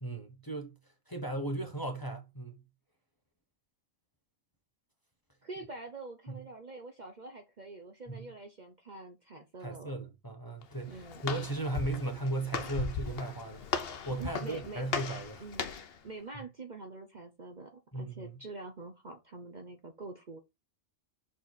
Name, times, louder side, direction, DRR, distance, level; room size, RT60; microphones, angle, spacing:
voice 1, 0.0-0.7 1.1-2.6 6.3-6.4 8.1-8.3 9.6-15.4 17.9-18.4, right 2 dB, 15° left, 1.0 m, -36 dB
voice 2, 5.4-9.9 10.9-11.2 14.2-14.8 15.4-15.7 16.0-20.4, right 3 dB, 40° right, 0.9 m, -45 dB
Walk footsteps, 10.6-16.0, left 6 dB, 50° left, 0.9 m, -38 dB
6.2 x 4.7 x 4.1 m
omnidirectional pair, 1.4 m